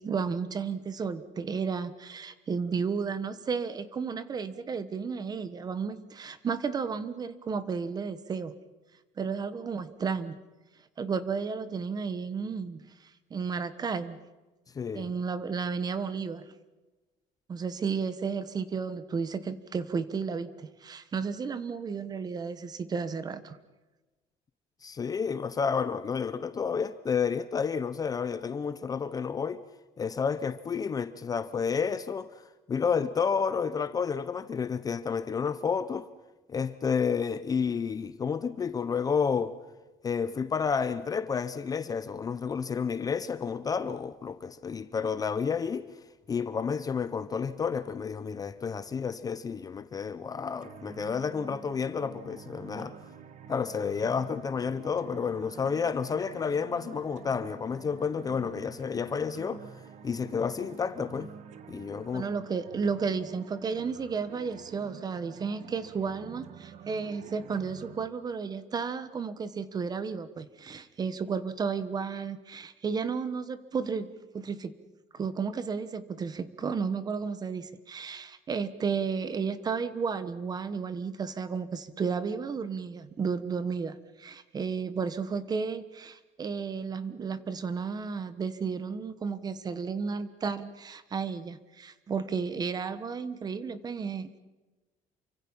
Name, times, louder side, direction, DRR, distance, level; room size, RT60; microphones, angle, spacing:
voice 1, 0.0-8.5 9.2-10.4 11.0-12.8 13.3-14.2 14.9-16.4 17.5-23.6 62.1-74.1 74.3-74.7 75.1-94.4, right 5 dB, 25° right, 1.2 m, -33 dB
voice 2, 14.7-15.1 24.8-29.6 30.0-32.4 32.7-36.1 36.5-39.6 40.0-45.9 46.3-52.9 53.5-59.7 60.0-61.3 61.7-62.3, left 6 dB, 25° left, 0.7 m, -30 dB
sound 1, 50.6-68.1, right 8 dB, 50° right, 1.6 m, -48 dB
28.5 x 25.0 x 5.6 m
cardioid pair, 175°, 16 cm